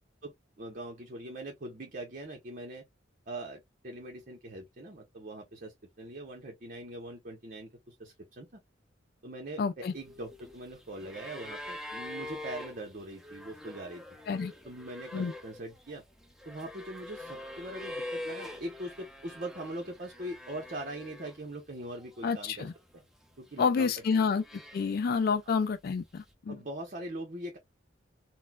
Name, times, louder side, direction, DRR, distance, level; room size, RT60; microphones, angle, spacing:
voice 1, 0.2-2.9 3.3-8.6 9.2-14.0 14.6-16.0 16.5-22.7 22.9-23.0 23.4-24.3 26.5-27.6, right 1 dB, 45° right, 0.8 m, -42 dB
voice 2, 9.6-9.9 14.3-14.5 15.1-15.3 22.2-22.7 23.6-24.4 24.7-26.6, left 5 dB, 55° left, 0.3 m, -29 dB
sound 1, 9.9-21.6 21.9-22.8 23.5-25.2 26.2-26.3, left 1 dB, ahead, 0.9 m, -44 dB
4.3 x 2.1 x 2.2 m
head